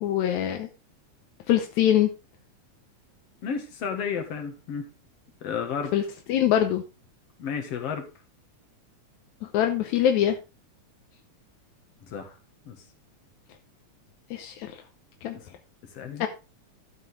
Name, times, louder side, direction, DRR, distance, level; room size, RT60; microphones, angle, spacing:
voice 1, 0.0-0.7 1.5-2.1 5.9-6.0 6.3-6.8 9.4-10.4 14.3-14.7 15.2-15.4 16.2-16.3, left 11 dB, 80° left, 6 dB, 2.1 m, -23 dB
voice 2, 3.4-4.9 5.4-5.9 7.4-8.1 12.0-12.4 12.7-12.8 15.3-15.5 15.9-16.3, left 6 dB, 60° left, 5 dB, 2.6 m, -32 dB
12.5 x 6.2 x 3.6 m, 0.30 s
omnidirectional pair, 3.3 m